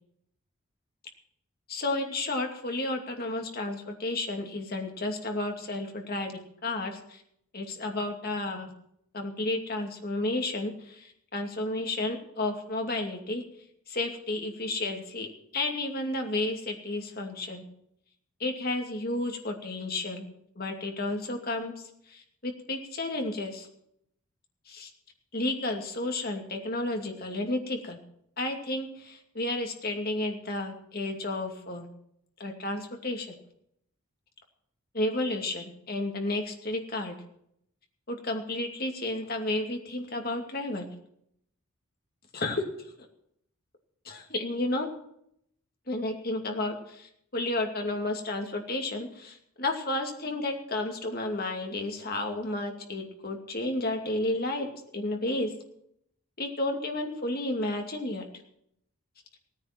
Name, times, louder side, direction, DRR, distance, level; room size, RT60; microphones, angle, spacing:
voice 1, 1.7-7.2 7.5-8.7 9.1-13.4 13.9-17.6 18.4-20.2 20.6-21.7 22.1-23.7 24.7-24.9 25.3-28.0 28.4-31.9 32.4-33.3 34.9-37.1 38.1-40.9 42.3-42.6 44.0-44.9 45.9-54.7 54.9-55.5 56.4-58.2, left 2 dB, 45° left, 3 dB, 2.6 m, -32 dB
17.5 x 9.8 x 6.0 m, 0.72 s
head